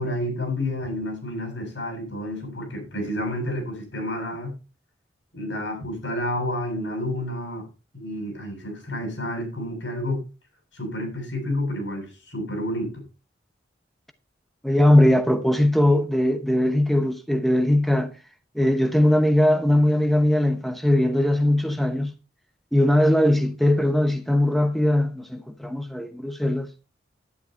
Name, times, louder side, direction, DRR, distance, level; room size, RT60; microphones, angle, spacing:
voice 1, 0.0-4.5 5.3-7.7 7.9-10.2 10.7-13.0, left 1 dB, 80° left, 7.8 m, -30 dB
voice 2, 14.6-18.1 18.5-22.1 22.7-26.7, left 1 dB, ahead, 0.9 m, -20 dB
11.0 x 9.9 x 4.3 m
head